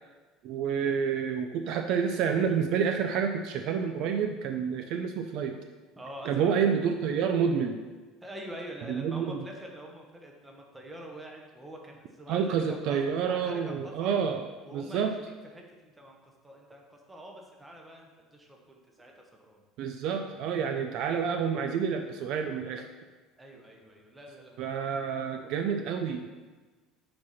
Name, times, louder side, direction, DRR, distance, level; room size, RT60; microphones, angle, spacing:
voice 1, 0.4-5.6 6.3-7.8 8.9-9.4 12.3-14.4 14.7-15.1 19.8-22.9 24.6-26.3, right 7 dB, 50° right, 5 dB, 0.5 m, -29 dB
voice 2, 6.0-6.6 8.2-14.1 14.6-19.6 23.4-24.9 25.4-25.5, equal, 10° right, 1 dB, 1.0 m, -46 dB
7.7 x 4.1 x 5.8 m, 1.3 s
cardioid pair, 170°, 0 cm